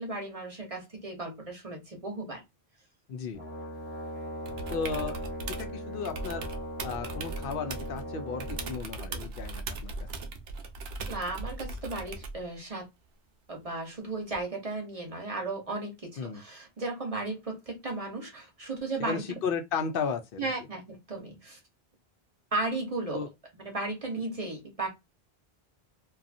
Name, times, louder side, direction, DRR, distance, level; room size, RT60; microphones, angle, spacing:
voice 1, 0.0-2.4 11.1-12.9 13.5-19.4 20.4-21.6 22.5-23.2 23.6-24.9, right 2 dB, 40° right, 0.9 m, -35 dB
voice 2, 3.1-3.4 4.7-5.1 5.6-6.5 6.8-10.1 16.2-16.4 19.0-20.5 23.1-23.3, left 5 dB, 65° left, 0.7 m, -34 dB
Brass instrument, 3.3-8.8, equal, 10° right, 0.8 m, -39 dB
sound 1, 4.5-5.7 6.1-8.0 8.4-12.4 14.3-14.4, right 3 dB, 75° right, 0.8 m, -38 dB
2.6 x 2.3 x 2.4 m
omnidirectional pair, 1.1 m